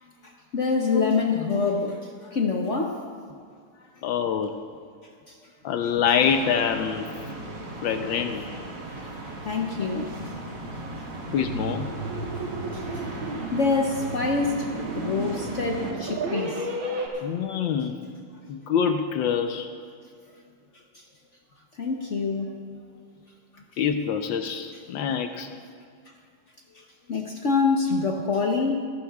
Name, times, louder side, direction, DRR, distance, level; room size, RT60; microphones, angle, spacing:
voice 1, 0.0-3.0 3.8-3.9 5.3-5.4 8.8-10.2 12.7-13.0 13.5-16.7 20.9-21.0 21.8-22.6 26.7-28.9, left 4 dB, 55° left, 1 dB, 0.8 m, -26 dB
voice 2, 4.0-4.6 5.6-7.1 7.8-8.4 11.3-11.9 17.2-18.0 18.5-19.7 23.8-25.5, left 7 dB, 80° left, 6 dB, 1.4 m, -25 dB
sound 1, 6.2-15.9, right 2 dB, 65° right, 2.5 m, -36 dB
sound 2, 11.6-17.1, right 2 dB, 85° right, 2.2 m, -34 dB
24.5 x 12.0 x 2.3 m, 2.1 s
omnidirectional pair, 2.1 m